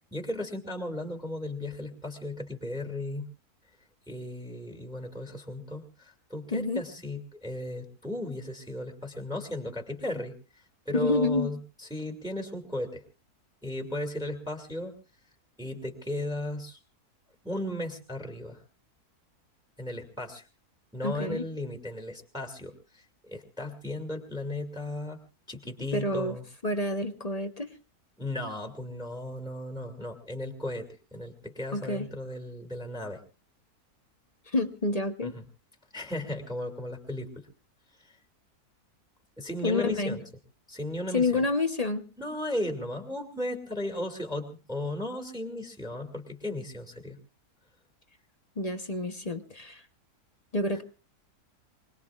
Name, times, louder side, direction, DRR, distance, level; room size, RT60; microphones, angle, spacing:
voice 1, 0.1-3.3 4.1-13.0 13.6-14.9 15.6-16.8 17.4-18.6 19.8-20.5 20.9-25.2 25.5-26.4 28.2-33.2 35.2-35.4 35.9-37.5 38.0-38.2 39.4-40.2 40.7-41.4 42.2-47.2, left 1 dB, 5° right, 4 dB, 2.1 m, -35 dB
voice 2, 6.5-6.8 10.9-11.5 21.0-21.4 25.9-26.3 26.6-27.7 31.7-32.1 34.5-35.3 39.6-40.2 41.1-42.1 48.6-49.8 50.5-50.8, left 2 dB, 30° left, 8 dB, 0.8 m, -28 dB
25.0 x 20.0 x 2.4 m, 0.35 s
omnidirectional pair, 1.6 m